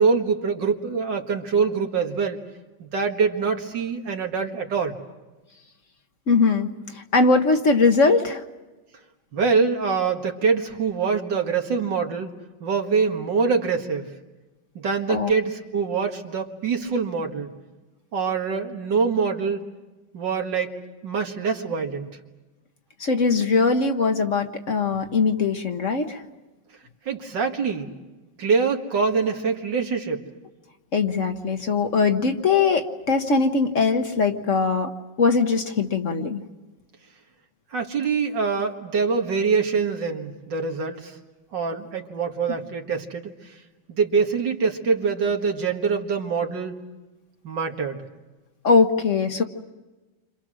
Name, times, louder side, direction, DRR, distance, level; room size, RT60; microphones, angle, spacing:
voice 1, 0.0-2.4 2.8-5.0 9.3-12.3 12.6-14.1 14.8-17.5 18.1-19.6 20.1-20.7 21.0-22.2 27.1-27.9 28.4-30.2 37.7-41.2 41.5-43.6 43.9-46.7 47.4-48.1, right 5 dB, 85° right, 3 dB, 2.5 m, -24 dB
voice 2, 6.3-6.7 6.9-8.4 15.1-15.3 23.0-26.2 30.9-34.9 35.2-36.4 48.6-49.4, left 4 dB, 50° left, 6 dB, 1.4 m, -21 dB
29.5 x 26.0 x 6.3 m, 1.1 s
omnidirectional pair, 1.9 m